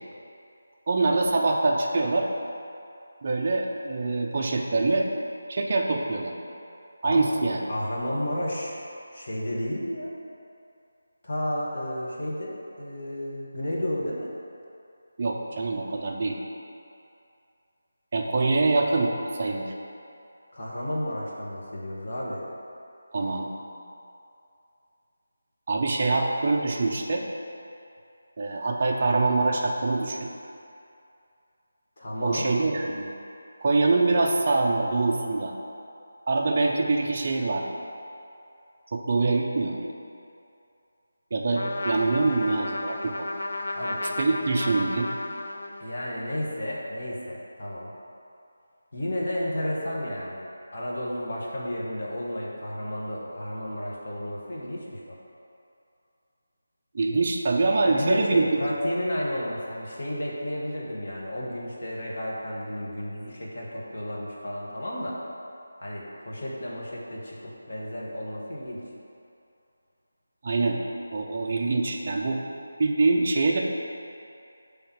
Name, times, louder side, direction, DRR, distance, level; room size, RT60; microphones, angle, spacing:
voice 1, 0.9-2.3 3.2-5.1 5.5-6.3 7.0-7.6 15.2-16.4 18.1-19.6 23.1-23.5 25.7-27.2 28.4-30.3 32.2-33.1 33.6-35.5 36.3-37.7 38.9-39.9 41.3-43.3 44.2-45.1 56.9-58.5 70.4-70.8 71.1-72.4 72.8-73.6, right 3 dB, 25° right, -1 dB, 0.4 m, -24 dB
voice 2, 7.7-8.8 9.1-10.1 11.2-14.3 20.5-22.4 32.0-32.5 43.7-44.0 45.8-47.9 48.9-50.4 50.7-55.2 57.9-65.2 65.8-68.8, left 1 dB, 35° left, -5 dB, 1.0 m, -32 dB
Trumpet, 41.5-46.1, left 2 dB, 75° left, 0.5 m, -33 dB
6.2 x 3.4 x 5.7 m, 2.6 s
figure-of-eight pair, 180°, 0 cm